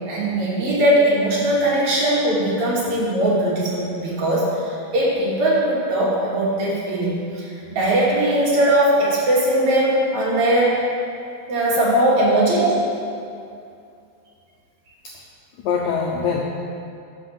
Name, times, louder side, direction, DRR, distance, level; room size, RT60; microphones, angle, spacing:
voice 1, 0.1-10.8 11.5-12.8, right 1 dB, 50° right, -7 dB, 3.6 m, -20 dB
voice 2, 15.6-16.4, left 6 dB, 85° left, -1 dB, 1.6 m, -23 dB
12.0 x 5.4 x 7.5 m, 2.5 s
omnidirectional pair, 4.4 m